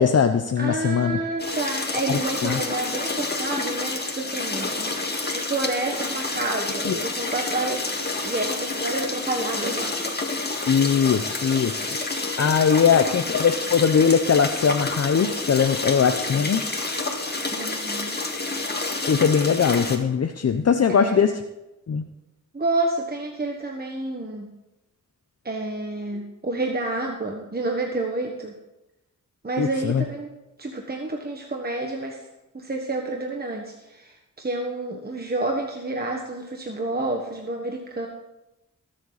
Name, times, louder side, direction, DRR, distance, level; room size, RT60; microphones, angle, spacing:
voice 1, 0.0-1.2 2.1-2.6 6.9-7.0 10.7-11.7 12.4-16.6 19.1-21.3 21.9-22.0 29.6-30.0, left 6 dB, 50° left, 7 dB, 0.7 m, -20 dB
voice 2, 0.6-5.0 5.3-10.0 12.7-12.8 17.6-18.2 21.0-21.2 22.5-24.5 25.4-28.5 29.4-30.3 30.6-32.3 32.5-38.1, right 2 dB, 30° right, 2 dB, 1.4 m, -29 dB
sound 1, 1.4-20.0, left 2 dB, 30° left, 2.0 m, -29 dB
20.5 x 7.7 x 4.1 m, 0.95 s
cardioid pair, 70°, 32 cm